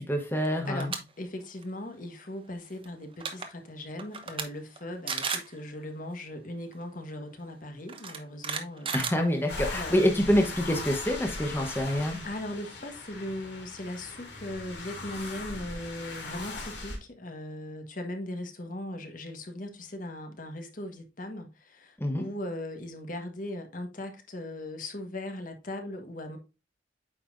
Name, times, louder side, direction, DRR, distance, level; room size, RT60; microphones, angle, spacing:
voice 1, 0.1-0.9 8.9-12.3 22.0-22.2, equal, 15° left, 1.0 m, -26 dB
sound 1, 0.6-1.0 1.4-1.6 2.8-2.9 3.1-3.5 4.0-4.4 4.8-4.9 5.1-5.5 6.7-6.8 7.9-9.7, right 6 dB, 30° right, 0.9 m, -33 dB
voice 2, 0.7-8.9 9.7-10.0 11.9-26.4, left 1 dB, 50° left, 1.4 m, -39 dB
sound 2, 9.5-17.0, left 2 dB, 85° left, 2.8 m, -39 dB
8.6 x 5.5 x 2.6 m
head